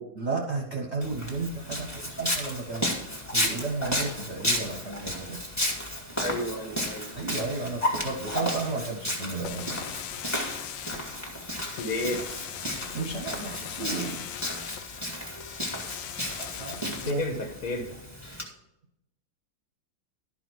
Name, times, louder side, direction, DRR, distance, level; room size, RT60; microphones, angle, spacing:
voice 1, 0.1-3.0 3.3-5.4 7.1-9.9 12.9-14.3 16.6-17.2, right 3 dB, 45° right, 0 dB, 1.0 m, -33 dB
Walk footsteps, 1.0-18.4, equal, 10° left, 1.6 m, -33 dB
voice 2, 6.2-7.1 11.8-12.2 17.0-18.0, left 1 dB, 55° left, 3 dB, 1.7 m, -31 dB
sound 1, 9.4-17.1, left 11 dB, 80° left, 1.3 m, -40 dB
12.0 x 4.9 x 6.1 m, 0.84 s
omnidirectional pair, 2.1 m